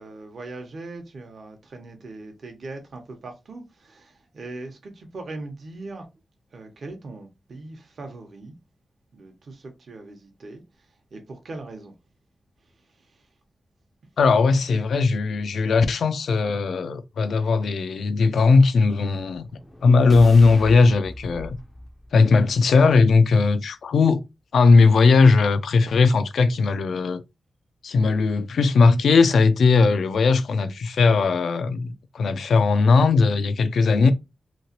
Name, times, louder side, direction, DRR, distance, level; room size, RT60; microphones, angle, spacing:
voice 1, 0.0-6.1 6.5-8.5 9.1-11.9 12.6-13.4, right 2 dB, 60° right, 0.8 m, -40 dB
voice 2, 14.2-19.4 19.8-21.6 22.1-24.2 24.5-27.2 27.8-34.1, left 4 dB, 90° left, 0.4 m, -18 dB
sound 1, 19.1-23.2, left 1 dB, 15° left, 0.4 m, -39 dB
3.1 x 2.8 x 2.8 m
wide cardioid pair, 125°, 0 cm